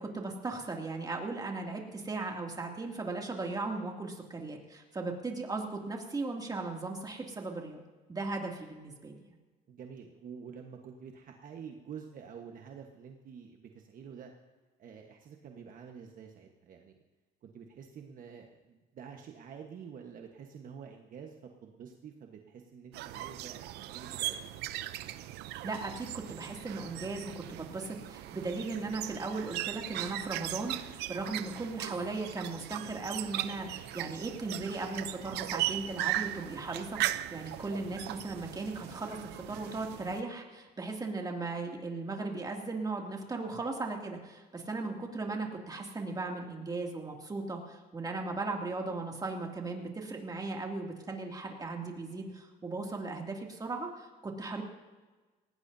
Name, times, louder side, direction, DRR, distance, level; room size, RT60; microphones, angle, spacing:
voice 1, 0.0-7.8 8.1-9.2 25.6-54.6, right 3 dB, 20° right, 1 dB, 2.6 m, -37 dB
voice 2, 9.7-14.3 14.8-17.0 17.4-24.3, right 7 dB, 55° right, 3 dB, 1.3 m, -48 dB
sound 1, 22.9-40.2, right 15 dB, 85° right, 0.6 m, -38 dB
19.0 x 17.5 x 2.8 m, 1.3 s
cardioid pair, 110°, 17 cm